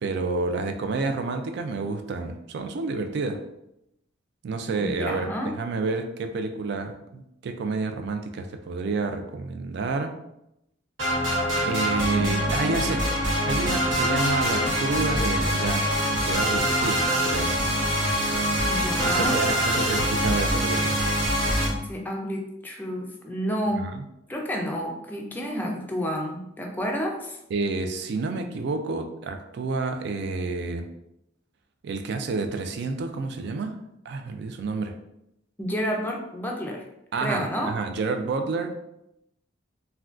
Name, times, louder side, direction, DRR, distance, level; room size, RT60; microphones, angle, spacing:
voice 1, 0.0-3.4 4.4-10.1 11.7-13.0 13.4-15.9 16.2-17.6 19.0-21.0 23.8-24.0 27.5-30.9 31.8-33.7 34.1-34.9 37.1-38.7, right 3 dB, 60° right, 6 dB, 0.3 m, -29 dB
voice 2, 4.8-5.5 12.1-12.4 18.7-19.4 21.7-23.9 24.3-27.4 35.6-36.8 37.2-37.7, equal, 10° left, 0 dB, 0.4 m, -30 dB
sound 1, 11.0-21.7, equal, 75° right, 1.0 m, -24 dB
3.5 x 2.2 x 2.4 m, 0.83 s
head